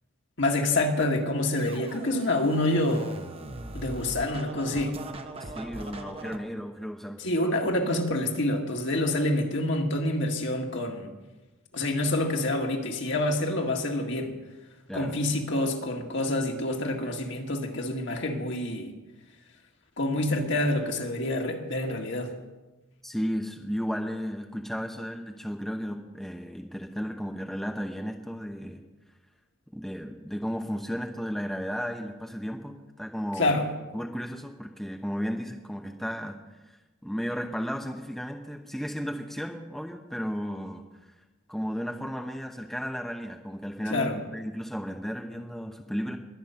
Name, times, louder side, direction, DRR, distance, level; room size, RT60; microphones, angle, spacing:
voice 1, 0.4-3.2 3.7-5.0 7.2-11.1 11.7-14.3 14.9-18.9 20.0-22.3 33.4-33.7 43.9-44.2, left 1 dB, 60° left, 2 dB, 1.9 m, -27 dB
Scratching (performance technique), 1.5-6.4, right 2 dB, 30° right, 1.0 m, -41 dB
voice 2, 5.4-7.7 14.9-15.1 23.0-28.9 29.7-33.6 33.9-41.1 41.5-46.2, equal, ahead, 3 dB, 0.8 m, -34 dB
21.5 x 8.1 x 5.8 m, 1.1 s
head